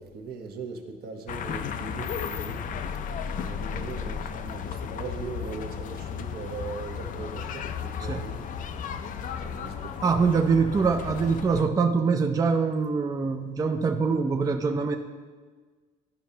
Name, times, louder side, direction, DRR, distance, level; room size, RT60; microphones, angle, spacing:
voice 1, 0.0-2.6 3.4-8.4 9.4-9.8 10.0-10.3 10.7-10.9, right 5 dB, 70° right, 3 dB, 1.0 m, -39 dB
sound 1, 1.3-11.7, left 7 dB, 50° left, 0.5 m, -34 dB
voice 2, 8.0-8.3 10.0-15.0, right 5 dB, 20° right, 5 dB, 0.4 m, -24 dB
11.5 x 5.1 x 2.8 m, 1.4 s
cardioid pair, 110°, 17 cm